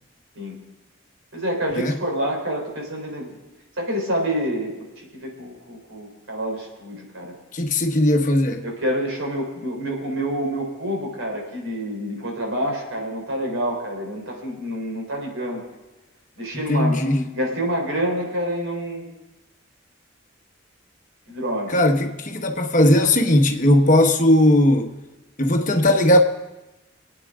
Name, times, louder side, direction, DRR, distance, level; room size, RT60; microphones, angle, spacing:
voice 1, 1.3-3.3 3.8-7.3 8.6-15.6 16.4-19.1 21.3-21.8, equal, 85° right, 0 dB, 3.8 m, -27 dB
voice 2, 7.5-8.6 16.7-17.2 21.7-24.9 25.4-26.2, left 1 dB, 40° left, 4 dB, 1.1 m, -18 dB
24.5 x 8.9 x 3.7 m, 1.0 s
head